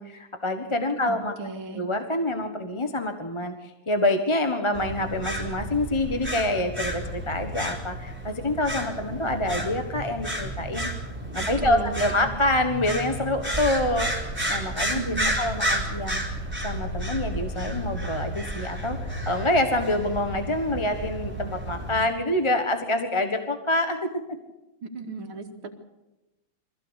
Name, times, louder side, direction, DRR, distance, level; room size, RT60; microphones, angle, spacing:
voice 1, 0.0-1.3 1.7-10.9 11.3-14.1 14.5-16.2 16.6-24.1, left 1 dB, 15° left, 6 dB, 1.2 m, -26 dB
voice 2, 1.1-1.8 11.4-12.3 14.9-15.4 24.8-25.9, right 3 dB, 80° right, 5 dB, 2.8 m, -36 dB
sound 1, 4.7-22.1, right 1 dB, 5° right, 4.1 m, -31 dB
24.0 x 15.5 x 8.2 m, 1.0 s
omnidirectional pair, 2.2 m